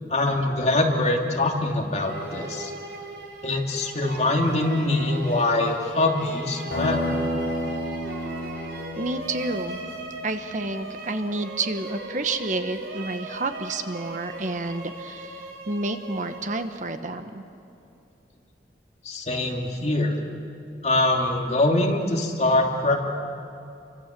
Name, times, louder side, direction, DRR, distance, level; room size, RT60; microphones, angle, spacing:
voice 1, 0.1-2.7 3.4-7.1 19.0-20.2 20.8-23.0, left 2 dB, 40° left, 1 dB, 2.8 m, -23 dB
sound 1, 1.9-17.0, right 1 dB, 65° right, 4.9 m, -38 dB
sound 2, 6.7-10.5, equal, 70° left, 6.4 m, -31 dB
voice 2, 9.0-9.8 10.2-17.4, right 2 dB, 45° right, 8 dB, 1.2 m, -30 dB
29.5 x 24.5 x 7.6 m, 2.7 s
head